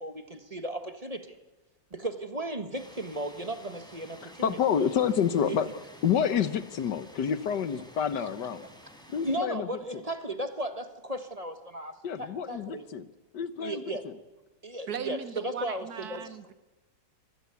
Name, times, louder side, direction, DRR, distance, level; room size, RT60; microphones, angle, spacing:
voice 1, 0.0-1.4 1.9-4.6 5.5-5.6 8.2-8.3 9.2-12.8 13.6-14.0 14.6-16.4, right 1 dB, 20° right, 8 dB, 1.3 m, -35 dB
sound 1, 2.7-9.4, equal, ahead, 4.1 m, -52 dB
voice 2, 4.2-5.7 6.0-8.7 9.1-10.0 12.0-13.1 13.3-14.1, left 8 dB, 65° left, 13 dB, 1.6 m, -28 dB
voice 3, 14.9-16.5, right 7 dB, 60° right, 12 dB, 1.4 m, -38 dB
25.5 x 19.0 x 8.4 m, 1.1 s
omnidirectional pair, 2.0 m